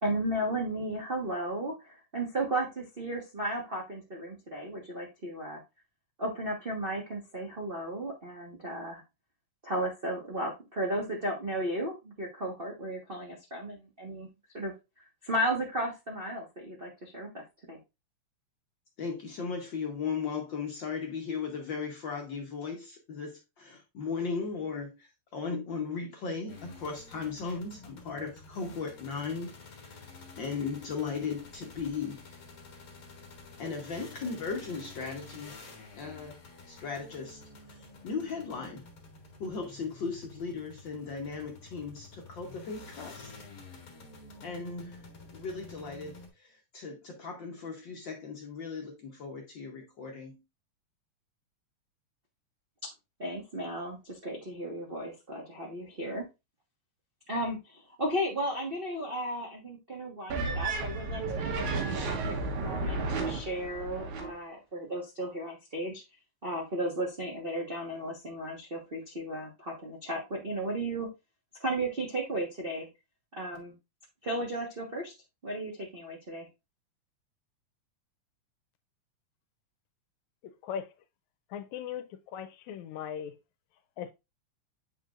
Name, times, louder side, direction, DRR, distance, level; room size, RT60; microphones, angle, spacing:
voice 1, 0.0-5.6 6.2-9.0 9.6-14.3 14.5-14.7 15.2-17.8 53.2-56.2 57.3-66.0 66.4-71.1 71.6-72.9 73.3-73.7 74.2-75.1 75.4-76.5, right 1 dB, 50° right, 0.6 m, -34 dB
voice 2, 19.0-29.6 29.9-30.0 30.4-32.2 33.6-35.7 36.0-36.4 36.7-37.4 38.0-38.8 39.4-43.3 44.4-45.0 45.3-50.4, left 5 dB, 65° left, 1.1 m, -37 dB
sound 1, 26.5-46.3, left 3 dB, 40° left, 1.3 m, -50 dB
sound 2, 60.3-64.3, right 3 dB, 80° right, 2.5 m, -33 dB
voice 3, 81.5-82.0 82.3-83.3 84.0-84.1, left 8 dB, 80° left, 1.9 m, -37 dB
8.2 x 5.0 x 2.4 m
omnidirectional pair, 3.4 m